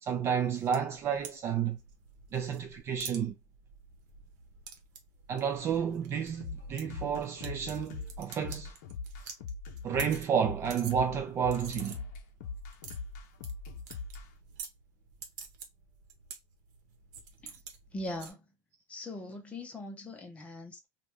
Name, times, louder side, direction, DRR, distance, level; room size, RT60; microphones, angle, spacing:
voice 1, 0.0-1.8 2.3-3.3 5.3-8.7 9.8-12.0, right 7 dB, 30° right, 0.4 m, -31 dB
sound 1, 0.6-18.3, right 5 dB, 80° right, 0.9 m, -49 dB
sound 2, 6.4-14.3, left 4 dB, 75° left, 0.8 m, -41 dB
voice 2, 17.9-18.4 18.9-20.9, left 1 dB, 15° left, 0.7 m, -41 dB
2.7 x 2.3 x 3.3 m
supercardioid pair, 155°, 9 cm